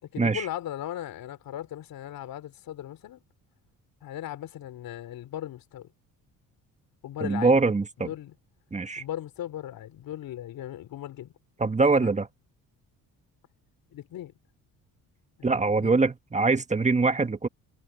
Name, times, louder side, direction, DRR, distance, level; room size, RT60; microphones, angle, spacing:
voice 1, 0.0-3.2 4.0-5.9 7.0-7.6 8.0-8.4 9.0-11.3 12.0-12.1 13.9-14.3 15.4-15.9, left 12 dB, 70° left, 3.5 m, -38 dB
voice 2, 7.2-8.1 8.7-9.0 11.6-12.3 15.4-17.5, right 3 dB, 20° right, 1.6 m, -23 dB
cardioid pair, 90°, 35 cm